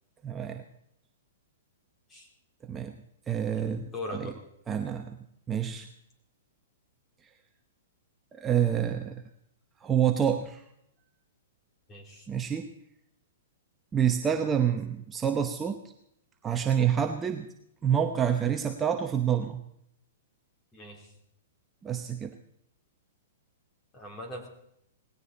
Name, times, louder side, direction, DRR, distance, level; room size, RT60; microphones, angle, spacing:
voice 1, 0.2-0.6 2.6-3.0 3.3-4.3 4.7-5.2 5.5-5.9 7.2-7.3 8.3-9.2 9.8-10.6 12.3-12.7 13.9-15.8 16.4-17.5 17.8-19.6 21.8-22.4, right 8 dB, 15° right, 5 dB, 0.9 m, -27 dB
voice 2, 3.9-4.3 11.9-12.3 20.7-21.1 23.9-24.5, left 1 dB, 20° left, 2 dB, 3.7 m, -40 dB
19.0 x 16.5 x 4.2 m, 0.76 s
hypercardioid pair, 145°, 0 cm